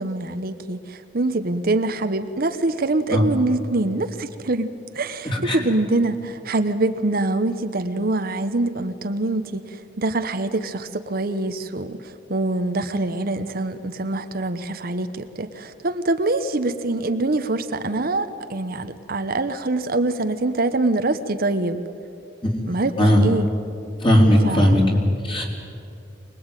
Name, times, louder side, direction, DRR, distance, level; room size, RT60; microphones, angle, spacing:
voice 1, 0.0-21.8 22.7-23.5 24.3-24.8, right 2 dB, 55° right, 9 dB, 1.0 m, -24 dB
voice 2, 5.3-5.6 23.0-23.2 24.0-25.4, equal, 30° left, 1 dB, 3.9 m, -17 dB
25.0 x 20.5 x 9.1 m, 2.6 s
head